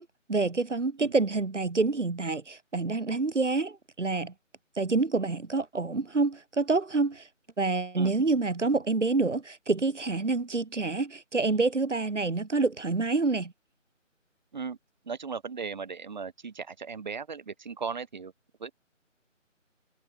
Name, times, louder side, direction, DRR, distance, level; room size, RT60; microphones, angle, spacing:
voice 1, 0.0-4.3 4.8-7.3 7.6-13.5, right 3 dB, 65° right, 3.4 m, -27 dB
voice 2, 15.0-18.3 18.6-18.7, right 5 dB, 35° right, 5.7 m, -37 dB
figure-of-eight pair, 165°, 39 cm